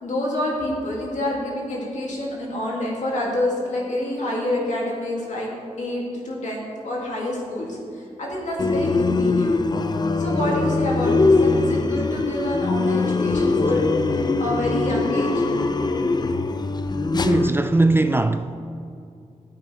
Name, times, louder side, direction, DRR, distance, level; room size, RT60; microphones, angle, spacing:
voice 1, 0.0-5.5 5.8-9.6 10.2-13.8 14.1-15.4, left 1 dB, 70° left, 2.7 m, -27 dB
sound 1, 8.6-17.5, left 3 dB, 35° left, 0.5 m, -21 dB
voice 2, 17.1-18.5, right 2 dB, 15° right, 0.4 m, -20 dB
12.5 x 8.7 x 3.5 m
wide cardioid pair, 85°, 13 cm